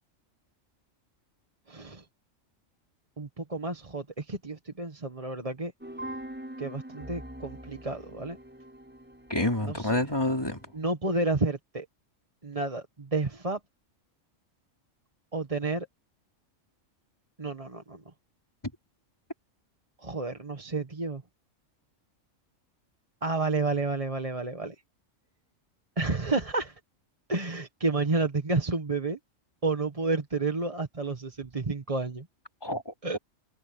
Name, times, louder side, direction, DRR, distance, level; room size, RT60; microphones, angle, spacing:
voice 1, 1.7-2.1 3.2-5.7 6.6-8.4 9.6-10.0 10.7-11.9 12.4-13.6 15.3-15.9 17.4-18.1 20.0-21.2 23.2-24.8 26.0-26.8 27.3-29.2 29.6-32.3 33.0-33.2, right 3 dB, 25° right, 1.5 m, -30 dB
sound 1, 5.8-10.8, right 1 dB, 10° right, 6.6 m, -43 dB
voice 2, 9.3-10.7 32.6-33.2, left 1 dB, 20° left, 3.6 m, -28 dB
omnidirectional pair, 1.3 m